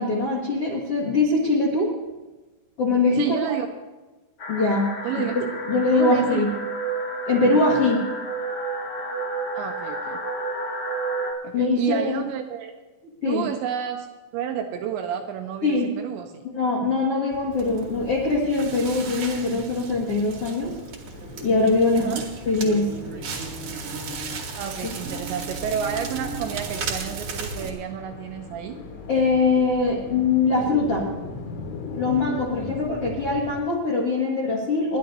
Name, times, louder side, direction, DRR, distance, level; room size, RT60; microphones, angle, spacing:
voice 1, 0.0-1.9 2.8-3.5 4.5-6.5 7.2-8.0 11.5-12.2 13.2-13.4 15.6-15.9 16.5-20.7 21.4-22.1 22.4-22.9 29.1-31.0 32.0-35.0, left 3 dB, 65° left, -4 dB, 1.5 m, -22 dB
voice 2, 3.1-3.7 5.0-5.4 5.9-6.4 9.5-10.2 11.4-12.7 13.2-14.1 14.3-16.4 21.9-22.3 24.6-28.8 32.7-33.0, right 9 dB, 85° right, 5 dB, 2.7 m, -30 dB
sound 1, 4.4-11.3, right 2 dB, 50° left, 1.9 m, -30 dB
sound 2, 17.3-33.5, left 3 dB, 80° left, 4.2 m, -40 dB
Crackle, 17.5-27.7, right 4 dB, 60° right, 2.0 m, -35 dB
29.0 x 11.0 x 2.7 m, 1.2 s
omnidirectional pair, 5.7 m